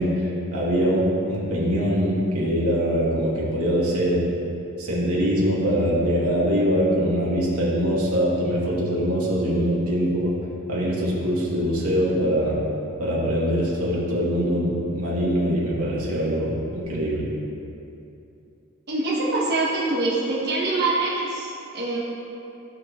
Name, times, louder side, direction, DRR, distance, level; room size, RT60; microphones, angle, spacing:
voice 1, 0.0-4.3 4.8-10.4 10.7-12.6 13.0-17.3, equal, 85° right, -6 dB, 2.3 m, -23 dB
voice 2, 18.9-22.0, right 2 dB, 45° right, -7 dB, 1.5 m, -24 dB
15.5 x 6.0 x 3.2 m, 2.8 s
head